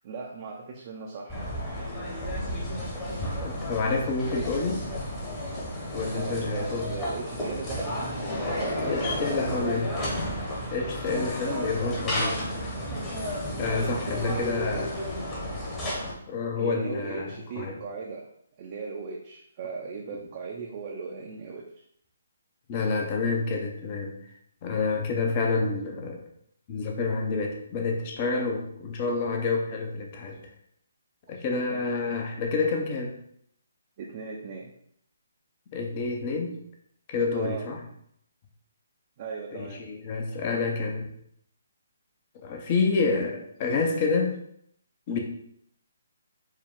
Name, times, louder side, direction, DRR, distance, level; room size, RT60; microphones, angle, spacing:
voice 1, 0.0-1.4 6.1-8.1 8.6-9.8 11.1-11.8 13.6-15.0 16.6-18.2 18.6-21.7 31.5-31.8 34.0-34.7 37.3-37.6 39.2-39.8, right 5 dB, 40° right, -1 dB, 0.5 m, -37 dB
sound 1, 1.3-16.1, equal, 20° left, 1.0 m, -32 dB
voice 2, 3.4-4.8 5.9-6.9 8.8-9.9 10.7-12.7 13.6-14.9 16.3-17.7 22.7-24.2 24.6-26.2 26.7-30.4 31.3-33.1 35.7-36.6 37.1-37.8 39.5-41.1 42.4-44.4 45.1-45.2, left 4 dB, 35° left, 2 dB, 0.7 m, -28 dB
4.6 x 2.2 x 3.6 m, 0.69 s
figure-of-eight pair, 140°, 0 cm